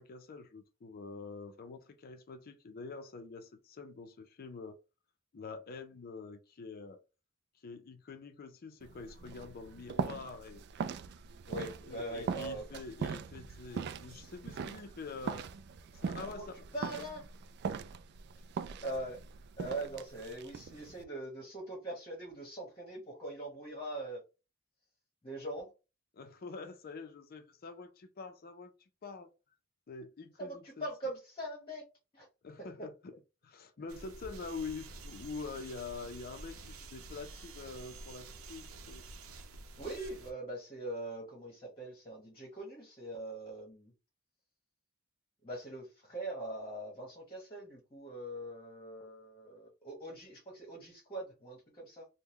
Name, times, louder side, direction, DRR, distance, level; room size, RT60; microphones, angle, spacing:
voice 1, 0.0-4.8 5.3-7.0 7.6-10.6 11.9-15.5 15.9-16.5 26.1-28.7 29.0-29.3 29.9-30.6 32.4-32.9 33.4-39.0, left 4 dB, 45° left, 0.5 m, -46 dB
sound 1, 8.8-21.0, right 6 dB, 55° right, 0.3 m, -41 dB
voice 2, 11.5-12.7 16.2-17.2 18.8-19.2 19.6-24.2 25.2-25.7 30.4-31.8 32.1-32.3 39.8-43.9 45.4-52.1, right 1 dB, 25° left, 1.1 m, -42 dB
sound 2, 33.9-40.3, right 3 dB, 90° right, 0.6 m, -49 dB
3.7 x 2.1 x 2.9 m
head